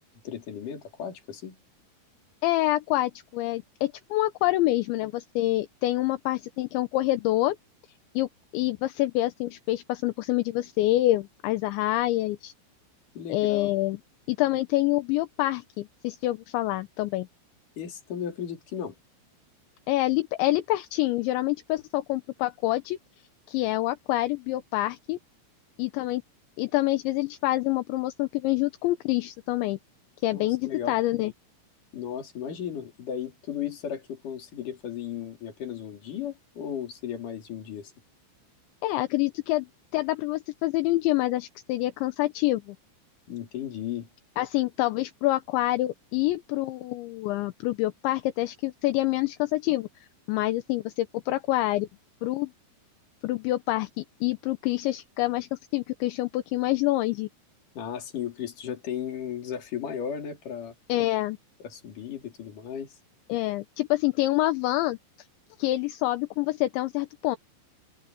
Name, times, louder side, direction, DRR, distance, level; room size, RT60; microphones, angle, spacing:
voice 1, 0.2-1.6 13.1-13.7 17.8-18.9 30.3-30.9 31.9-37.9 43.3-44.1 57.8-60.7 61.6-62.9, left 9 dB, 45° left, 4.5 m, -35 dB
voice 2, 2.4-7.6 8.2-12.5 13.3-14.0 14.3-17.3 19.9-23.0 23.5-25.2 25.8-26.2 26.6-29.8 30.2-31.3 38.8-39.7 39.9-42.8 44.4-51.9 52.2-52.5 53.2-57.3 60.9-61.4 63.3-65.0 65.6-67.4, left 17 dB, 80° left, 3.1 m, -26 dB
omnidirectional pair, 5.6 m